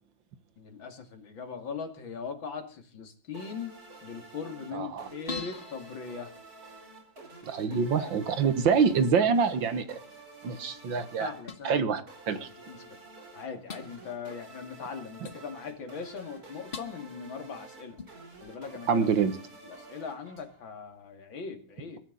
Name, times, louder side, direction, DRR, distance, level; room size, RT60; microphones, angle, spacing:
voice 1, 0.6-3.7 4.0-6.3 7.5-8.5 11.2-11.9 12.3-12.8 13.3-18.0 18.4-19.1 19.6-22.0, left 5 dB, 75° left, 7 dB, 3.1 m, -40 dB
sound 1, 3.3-20.8, right 3 dB, 45° right, 4.6 m, -50 dB
voice 2, 4.7-5.1 7.4-10.0 10.4-11.3 11.7-12.5 18.9-19.4, right 6 dB, 70° right, 12 dB, 2.0 m, -26 dB
sound 2, 5.3-7.0 11.5-11.7 12.8-12.9 13.7-13.9 15.2-15.4 16.7-17.0 18.0-18.6 20.4-20.7, left 4 dB, 35° left, 1.3 m, -42 dB
22.5 x 13.0 x 4.0 m, 0.38 s
omnidirectional pair, 2.2 m